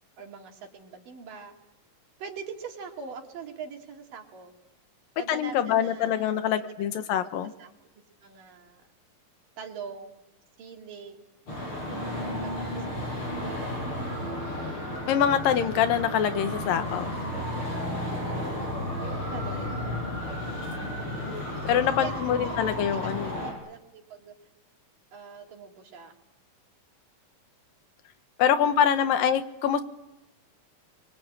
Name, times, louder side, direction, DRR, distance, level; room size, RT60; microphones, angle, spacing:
voice 1, 0.2-1.5 2.2-4.5 5.2-6.4 7.6-7.7 8.2-8.8 9.6-10.2 10.6-11.2 12.0-13.0 18.0-18.6 19.0-19.7 22.0-24.3 25.1-26.2 28.7-29.1, right 6 dB, 75° right, 2 dB, 4.3 m, -43 dB
voice 2, 5.3-7.5 15.1-17.1 21.6-23.5 28.4-29.8, left 9 dB, 90° left, 9 dB, 3.0 m, -25 dB
Traffic noise roadway noise, 11.5-23.5, left 1 dB, 35° left, 7.7 m, -33 dB
25.5 x 24.0 x 8.8 m, 0.96 s
omnidirectional pair, 3.9 m